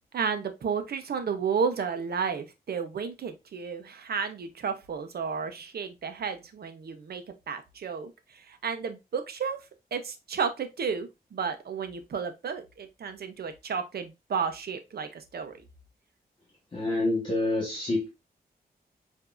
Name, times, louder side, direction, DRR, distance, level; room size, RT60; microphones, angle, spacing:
voice 1, 0.1-9.6 9.9-15.6, right 6 dB, 75° right, 0.8 m, -32 dB
voice 2, 16.7-18.1, left 2 dB, 30° left, 1.5 m, -27 dB
6.8 x 2.7 x 2.5 m
wide cardioid pair, 135°, 16 cm